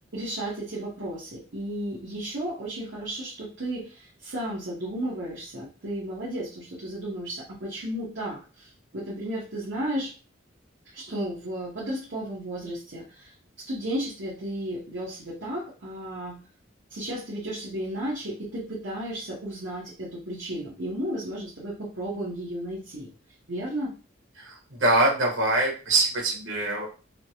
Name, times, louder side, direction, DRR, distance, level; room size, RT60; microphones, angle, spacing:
voice 1, 0.1-10.1 10.9-13.3 13.6-16.4 16.9-23.1 23.5-23.9, right 1 dB, 65° right, -7 dB, 1.0 m, -33 dB
voice 2, 24.4-26.9, right 2 dB, 85° right, -1 dB, 1.2 m, -24 dB
3.2 x 2.1 x 2.8 m, 0.35 s
head